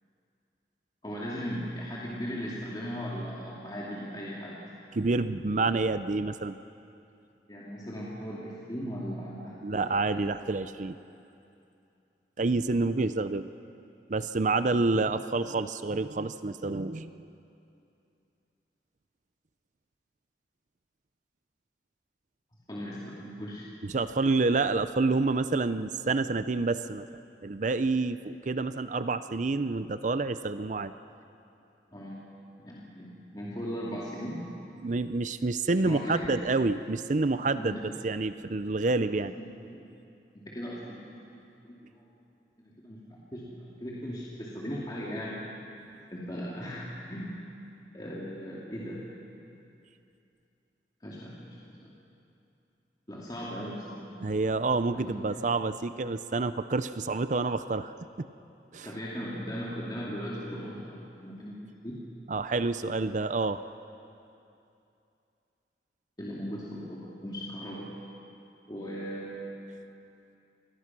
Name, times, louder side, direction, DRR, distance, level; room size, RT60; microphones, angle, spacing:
voice 1, 1.0-4.6 7.5-10.3 22.7-23.7 31.9-32.2 32.6-34.4 35.8-36.4 37.5-38.0 38.7-38.9 39.3-39.8 40.3-41.4 41.6-42.0 42.6-45.4 46.1-47.3 47.9-49.0 51.0-51.9 53.1-54.1 54.9-55.4 58.8-62.0 66.2-67.9 68.7-69.5, equal, 25° left, -6 dB, 2.6 m, -38 dB
voice 2, 4.9-6.6 9.6-10.9 12.4-13.5 14.1-17.1 23.8-27.1 27.4-30.9 34.8-37.8 38.0-39.3 54.2-57.9 58.2-58.3 58.7-58.9 62.3-63.6, right 3 dB, 45° right, 12 dB, 0.5 m, -28 dB
27.0 x 20.5 x 6.1 m, 2.7 s
head